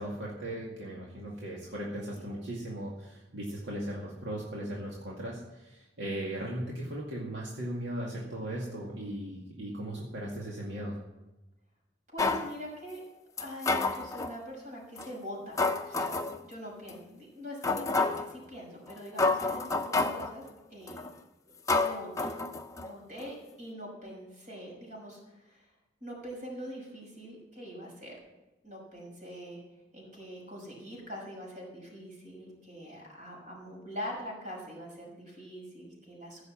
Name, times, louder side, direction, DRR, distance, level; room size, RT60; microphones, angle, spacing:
voice 1, 0.0-11.0, right 1 dB, 75° right, -4 dB, 2.2 m, -37 dB
voice 2, 12.1-13.0 13.4-21.0 21.5-21.6 21.8-22.3 22.8-25.7 26.0-28.2 28.6-29.6 29.9-36.4, equal, 45° right, -2 dB, 5.8 m, -43 dB
sound 1, 12.2-12.5 13.4-14.3 15.0-15.1 15.6-16.4 16.9-17.0 17.6-18.3 18.9-19.0 19.2-20.3 20.9-21.1 21.7-22.9 23.2-23.3, left 3 dB, 15° left, 0.7 m, -29 dB
15.5 x 6.4 x 7.5 m, 1.0 s
head